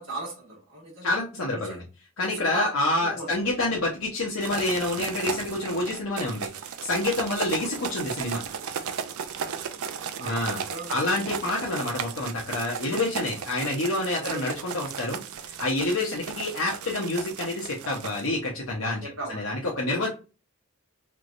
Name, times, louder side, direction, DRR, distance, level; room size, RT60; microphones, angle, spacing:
voice 1, 0.0-1.2 1.5-1.8 2.2-3.8 7.6-7.7 9.4-9.8 10.2-11.7 14.2-14.5 19.0-19.5, right 3 dB, 65° right, -2 dB, 1.3 m, -39 dB
voice 2, 1.0-1.8 2.2-8.4 10.2-10.6 10.9-19.0 19.3-20.1, left 2 dB, 80° left, -3 dB, 0.9 m, -28 dB
sound 1, 4.4-18.3, right 7 dB, 80° right, 0.4 m, -35 dB
3.3 x 3.1 x 2.5 m, 0.32 s
head